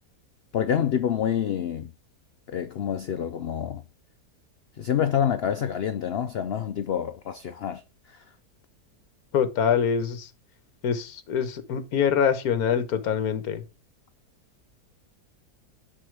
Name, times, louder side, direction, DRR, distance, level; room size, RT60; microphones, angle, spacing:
voice 1, 0.5-1.9 2.5-3.8 4.8-7.8 8.1-8.2, left 9 dB, 85° left, 0.5 m, -27 dB
voice 2, 9.3-10.3 10.8-13.6, left 7 dB, 65° left, 1.4 m, -24 dB
9.7 x 3.9 x 3.3 m
omnidirectional pair, 1.7 m